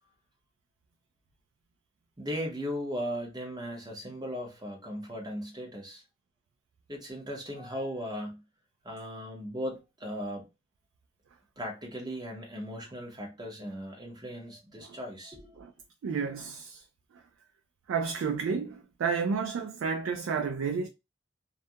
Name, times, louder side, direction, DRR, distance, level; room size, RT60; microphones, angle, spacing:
voice 1, 2.2-6.0 6.9-8.4 8.8-10.5 11.6-15.6, equal, 20° right, 0.8 m, -37 dB
voice 2, 16.0-16.8 17.1-17.2 17.9-20.9, right 5 dB, 80° right, 0.3 m, -31 dB
2.4 x 2.1 x 2.6 m
head